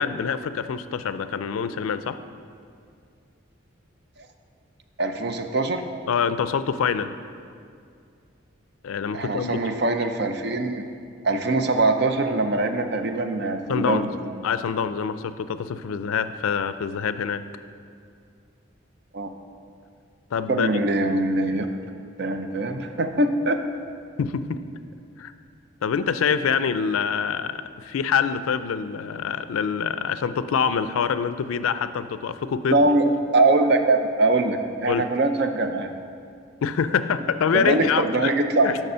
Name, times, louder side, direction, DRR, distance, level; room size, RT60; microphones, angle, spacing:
voice 1, 0.0-2.2 6.1-7.1 8.8-9.6 13.7-14.1 14.4-17.4 20.3-20.7 24.2-24.6 25.2-25.3 25.8-32.9 34.9-35.1 36.6-38.3 38.6-38.8, left 6 dB, 85° left, 12 dB, 0.4 m, -25 dB
voice 2, 5.0-5.8 9.1-10.8 11.2-14.1 19.1-19.3 20.5-21.7 22.2-23.6 32.7-33.1 33.3-35.9 37.5-38.8, right 2 dB, 50° right, 7 dB, 0.5 m, -22 dB
6.7 x 5.9 x 5.5 m, 2.3 s
head